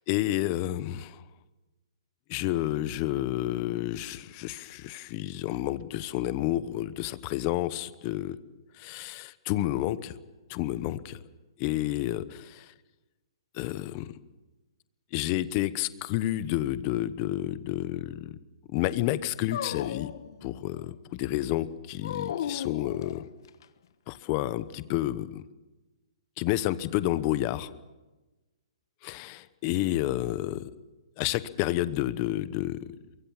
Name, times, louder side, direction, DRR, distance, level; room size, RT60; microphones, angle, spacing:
voice 1, 0.1-1.2 2.3-8.4 8.8-10.1 10.5-11.2 11.6-12.7 13.5-14.1 15.1-18.4 18.7-20.1 20.4-23.2 24.1-25.4 26.4-27.7 29.0-30.7 31.2-32.9, left 15 dB, 25° left, 15 dB, 0.9 m, -30 dB
Dog, 19.5-20.9 22.0-23.6, left 9 dB, 45° left, 1.3 m, -36 dB
24.0 x 22.5 x 7.2 m, 1.1 s
hypercardioid pair, 170°, 3 cm